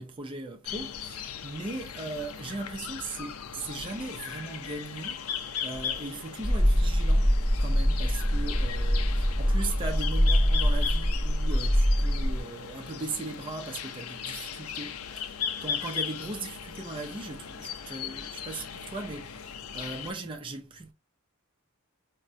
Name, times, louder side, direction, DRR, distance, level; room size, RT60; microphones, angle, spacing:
voice 1, 0.0-7.3 7.6-20.9, right 3 dB, 25° right, 0.4 m, -38 dB
sound 1, 0.6-20.1, left 8 dB, 85° left, 0.5 m, -38 dB
sound 2, 6.4-12.4, equal, 5° right, 0.8 m, -24 dB
4.9 x 2.1 x 2.5 m
head